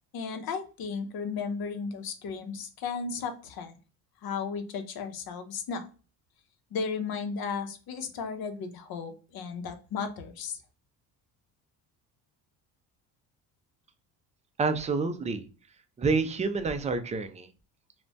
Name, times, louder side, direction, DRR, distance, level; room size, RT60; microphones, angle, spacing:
voice 1, 0.1-3.7 4.2-5.9 6.7-10.6, left 5 dB, 55° left, 7 dB, 0.7 m, -35 dB
voice 2, 14.6-15.4 16.0-17.5, right 4 dB, 15° right, 8 dB, 0.4 m, -28 dB
2.5 x 2.1 x 3.2 m, 0.36 s
supercardioid pair, 70°, 43 cm